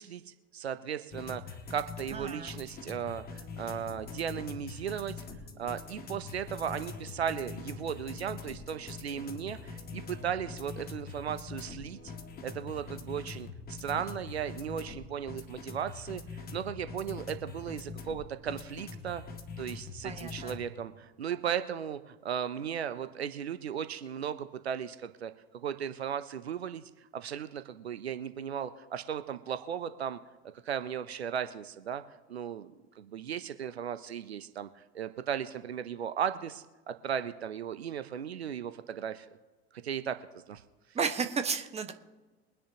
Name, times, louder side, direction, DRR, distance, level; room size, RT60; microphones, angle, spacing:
voice 1, 0.0-5.2 5.6-12.1 12.4-19.2 19.6-30.2 30.6-32.0 32.3-39.3 39.8-40.6, right 8 dB, 80° right, 12 dB, 0.8 m, -36 dB
sound 1, 1.1-20.7, left 4 dB, 30° left, 2.0 m, -44 dB
voice 2, 2.1-2.5 20.0-20.6 40.9-41.9, right 5 dB, 20° right, 7 dB, 1.4 m, -33 dB
23.0 x 10.0 x 2.9 m, 1.2 s
figure-of-eight pair, 80°, 32 cm